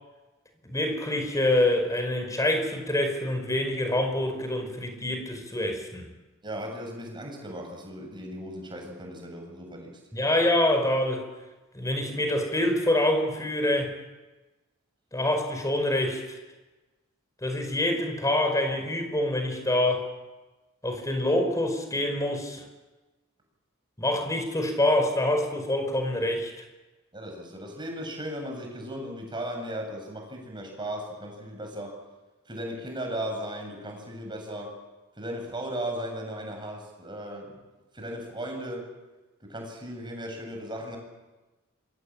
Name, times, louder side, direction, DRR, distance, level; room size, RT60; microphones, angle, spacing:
voice 1, 0.6-6.0 10.1-11.3 11.7-13.9 15.1-16.4 17.4-20.1 20.8-22.6 24.0-26.5, left 1 dB, 15° left, 6 dB, 5.1 m, -26 dB
voice 2, 6.4-10.0 27.1-31.9 32.4-34.7 35.2-37.6 37.9-38.9 39.4-41.0, equal, 20° right, 2 dB, 7.9 m, -36 dB
27.0 x 24.5 x 8.9 m, 1.2 s
head